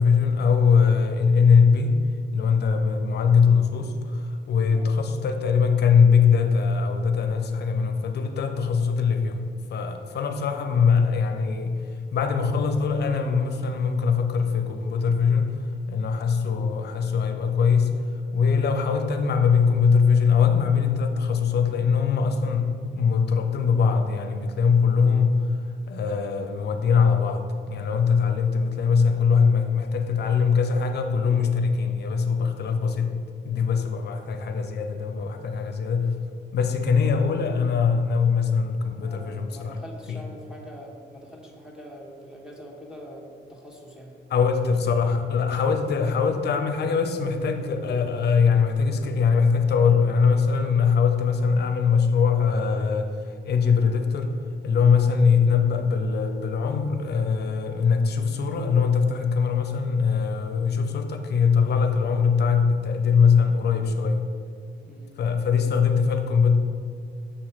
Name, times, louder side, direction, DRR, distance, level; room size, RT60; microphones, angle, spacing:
voice 1, 0.0-2.0 2.3-11.8 12.1-15.6 15.9-17.9 18.3-25.6 25.9-33.2 33.4-36.2 36.5-39.8 40.1-40.2 44.3-54.4 54.6-64.3 65.2-66.6, left 6 dB, 55° left, 6 dB, 0.6 m, -22 dB
voice 2, 39.0-44.1 64.8-65.1, equal, 5° right, -1 dB, 1.2 m, -44 dB
6.8 x 3.0 x 5.7 m, 2.2 s
cardioid pair, 90°, 20 cm